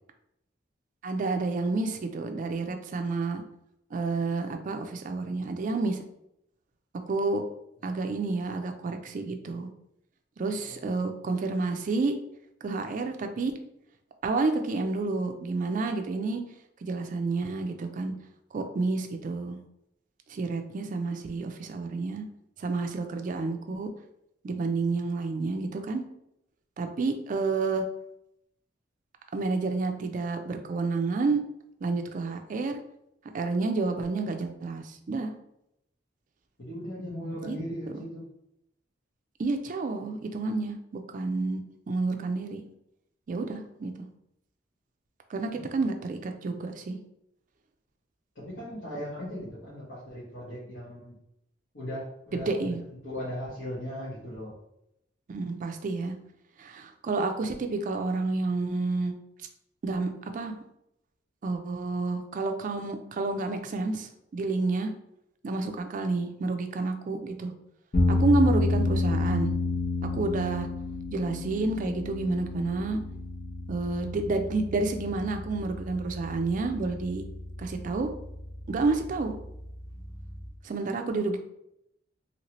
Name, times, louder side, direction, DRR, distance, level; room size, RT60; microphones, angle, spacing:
voice 1, 1.0-3.4 3.9-6.0 7.1-7.4 7.8-9.7 10.4-12.1 12.6-13.5 14.2-16.4 16.8-18.1 18.5-19.6 20.3-22.2 22.6-23.9 24.4-26.0 26.8-27.8 29.3-31.4 31.8-32.8 33.3-35.3 37.4-37.6 39.4-41.6 41.9-42.6 43.3-44.0 45.3-47.0 52.3-52.8 55.3-56.1 56.6-59.1 59.8-60.6 61.4-64.9 65.4-67.5 68.1-69.5 70.1-70.7 71.1-73.0 73.7-77.2 77.6-78.1 78.7-79.3 80.6-81.4, right 3 dB, 45° right, 6 dB, 0.3 m, -29 dB
voice 2, 10.7-11.3 36.6-38.3 45.4-45.7 48.3-51.1 51.7-54.5, equal, 75° left, -9 dB, 1.1 m, -38 dB
sound 1, 67.9-80.4, left 2 dB, 50° left, 0.8 m, -31 dB
2.8 x 2.8 x 3.0 m, 0.80 s
head